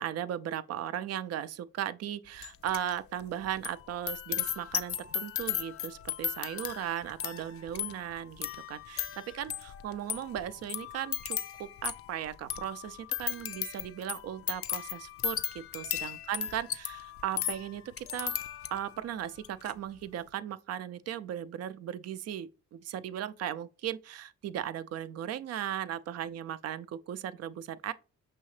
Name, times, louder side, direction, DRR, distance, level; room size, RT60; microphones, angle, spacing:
voice 1, 0.0-18.4 18.7-27.9, right 10 dB, 55° right, 0.4 m, -37 dB
sound 1, 2.4-2.9 3.2-19.0 19.4-19.7, left 9 dB, 50° left, 0.5 m, -36 dB
6.0 x 2.8 x 3.2 m
supercardioid pair, 65°, 30 cm